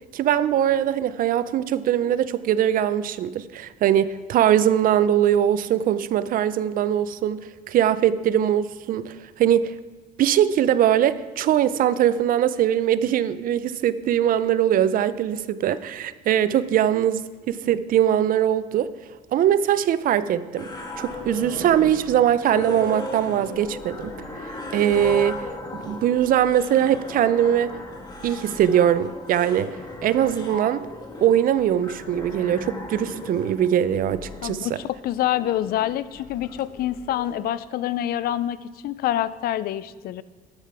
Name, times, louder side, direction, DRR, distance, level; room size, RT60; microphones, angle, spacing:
voice 1, 0.1-9.7 10.2-18.9 19.3-24.1 24.7-25.4 25.7-27.7 28.2-29.7 30.0-30.8 31.2-34.8, right 10 dB, 55° right, 15 dB, 0.5 m, -21 dB
sound 1, 20.6-37.5, left 2 dB, 25° left, 1.5 m, -36 dB
voice 2, 34.4-40.2, left 12 dB, 65° left, 16 dB, 0.4 m, -26 dB
10.5 x 7.5 x 4.7 m, 1.3 s
cardioid pair, 110°, 17 cm